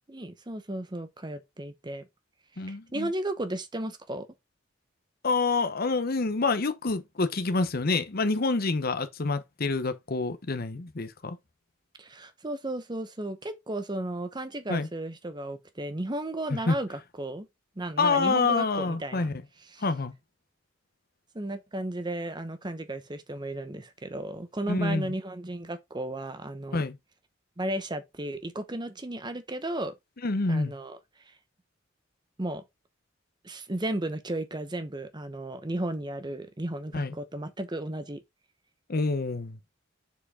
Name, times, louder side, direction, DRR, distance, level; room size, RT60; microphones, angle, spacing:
voice 1, 0.1-2.1 2.7-4.3 12.0-17.5 17.8-19.3 19.7-19.8 21.3-26.8 27.6-29.9 30.5-31.0 31.3-31.4 32.4-32.6 33.4-38.2, right 1 dB, 25° right, 1.0 m, -34 dB
voice 2, 2.6-3.1 5.2-11.4 14.7-14.9 16.5-16.8 18.0-19.4 19.8-20.1 24.7-25.1 26.7-27.0 30.2-30.7 36.9-37.1 38.9-39.6, left 3 dB, 50° left, 0.8 m, -27 dB
7.1 x 4.6 x 3.6 m
head